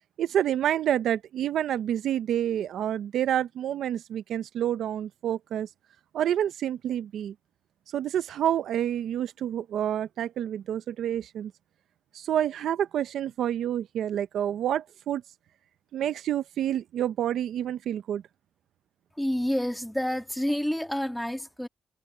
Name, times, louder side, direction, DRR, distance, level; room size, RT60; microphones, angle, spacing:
voice 1, 0.2-5.7 6.1-7.3 7.9-11.5 12.1-15.2 15.9-18.2, right 10 dB, 80° right, 0.6 m, -28 dB
voice 2, 19.2-21.7, equal, 5° left, 2.0 m, -28 dB
cardioid pair, 105°, 0 cm